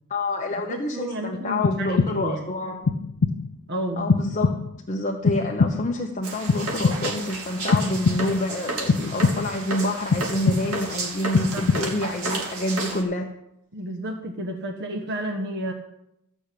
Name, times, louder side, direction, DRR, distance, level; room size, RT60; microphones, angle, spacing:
voice 1, 0.1-2.9 4.0-13.3, left 1 dB, 35° left, 1 dB, 0.9 m, -28 dB
voice 2, 0.7-2.4 3.7-4.1 11.5-11.7 13.7-15.7, right 1 dB, 50° right, 2 dB, 1.3 m, -31 dB
sound 1, 1.6-2.4 2.9-3.6 4.1-4.9 5.2-6.1 6.5-7.3 7.7-8.5 8.9-9.7 10.1-10.9 11.3-12.1, left 4 dB, 65° left, 0.5 m, -24 dB
sound 2, 6.2-13.0, right 3 dB, 70° right, 2.7 m, -32 dB
14.0 x 6.3 x 8.5 m, 0.84 s
head